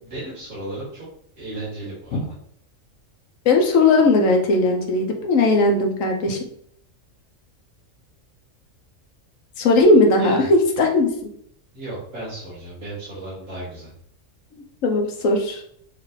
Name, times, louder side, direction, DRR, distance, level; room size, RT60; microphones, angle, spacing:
voice 1, 0.0-1.1 1.4-2.2 10.2-10.5 11.7-13.9, right 2 dB, 45° right, -8 dB, 2.2 m, -34 dB
voice 2, 3.4-6.4 9.6-11.1 14.5-15.6, left 2 dB, 85° left, 3 dB, 1.2 m, -18 dB
6.4 x 2.5 x 3.2 m, 0.67 s
omnidirectional pair, 1.4 m